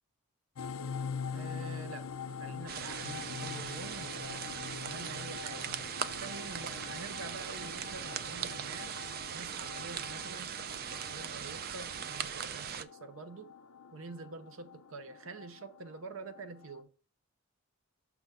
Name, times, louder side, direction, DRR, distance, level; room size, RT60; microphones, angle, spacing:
sound 1, 0.6-16.8, left 6 dB, 75° left, 0.5 m, -44 dB
voice 1, 1.3-2.1 2.4-4.5 4.8-5.7 6.2-9.0 9.3-10.6 10.9-13.6 13.9-16.9, right 3 dB, 65° right, 0.7 m, -47 dB
sound 2, 2.7-12.8, right 8 dB, 45° right, 0.3 m, -40 dB
6.0 x 3.4 x 5.4 m
head